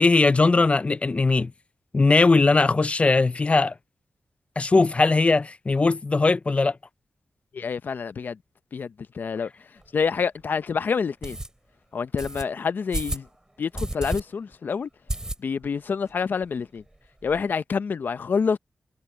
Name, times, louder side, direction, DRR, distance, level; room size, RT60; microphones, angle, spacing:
voice 1, 0.0-1.5 1.9-3.7 4.6-6.8, left 3 dB, 40° left, 0.5 m, -19 dB
voice 2, 7.5-8.4 8.7-9.5 9.9-11.4 11.9-13.3 13.6-14.9 15.4-16.8 17.2-18.6, left 5 dB, 70° left, 0.7 m, -27 dB
sound 1, 9.8-9.9 10.4-10.5 11.2-11.5 12.2-12.4 12.9-13.3 13.7-14.2 14.5-14.6 15.1-15.7 16.1-16.2 16.4-16.5 16.8-17.4, right 1 dB, 20° right, 2.7 m, -31 dB
cardioid pair, 65°, 3 cm